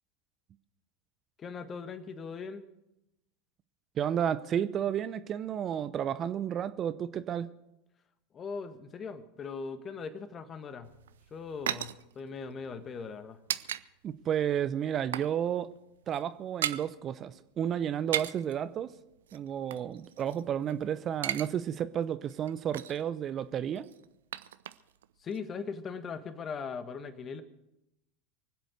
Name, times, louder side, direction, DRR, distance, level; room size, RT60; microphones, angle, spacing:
voice 1, 1.4-2.6 8.3-10.9 11.3-13.4 25.2-27.4, left 5 dB, 30° left, 11 dB, 1.5 m, -40 dB
voice 2, 4.0-7.5 14.0-15.7 16.1-18.9 19.3-23.9, right 9 dB, 35° right, 14 dB, 0.7 m, -32 dB
sound 1, 10.8-13.8 14.1-14.3 14.7-15.4 15.6-15.8 16.0-16.9 17.9-18.5 19.3-20.7 21.0-21.5 21.8-21.9 22.3-23.1 23.8-25.1 25.3-25.4, right 11 dB, 70° right, 0.5 m, -37 dB
24.0 x 8.0 x 6.5 m, 0.90 s
figure-of-eight pair, 80°, 0 cm